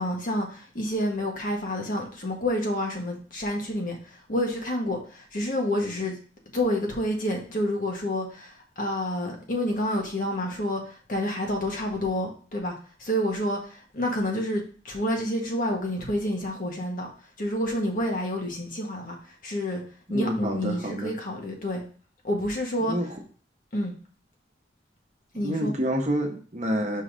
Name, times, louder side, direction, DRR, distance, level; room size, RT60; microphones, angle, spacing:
voice 1, 0.0-6.1 6.5-12.7 13.0-17.1 17.4-19.8 20.1-21.8 22.2-22.9 23.7-23.9 25.3-25.7, left 1 dB, 45° left, 0 dB, 1.6 m, -29 dB
voice 2, 20.1-21.1 22.8-23.2 25.4-27.0, equal, 40° right, 2 dB, 1.1 m, -28 dB
5.5 x 4.0 x 5.0 m, 0.42 s
head